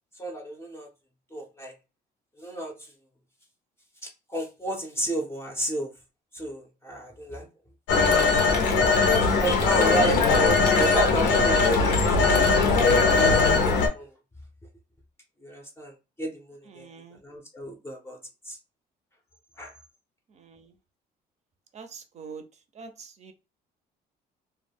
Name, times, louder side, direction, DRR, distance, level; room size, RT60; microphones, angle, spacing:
voice 1, 0.2-0.9 1.3-1.7 2.4-2.7 4.0-5.9 6.3-7.5 9.0-12.9 13.1-14.1 15.4-16.9 17.2-18.2 18.5-18.6 19.6-19.7, right 1 dB, 15° left, 0.6 m, -32 dB
Telephone, 7.9-13.9, left 4 dB, 80° left, 0.7 m, -20 dB
voice 2, 16.7-17.2 20.3-20.7 21.7-22.4 22.7-23.3, right 5 dB, 40° right, 0.5 m, -44 dB
2.2 x 2.1 x 3.4 m
cardioid pair, 110°, 17 cm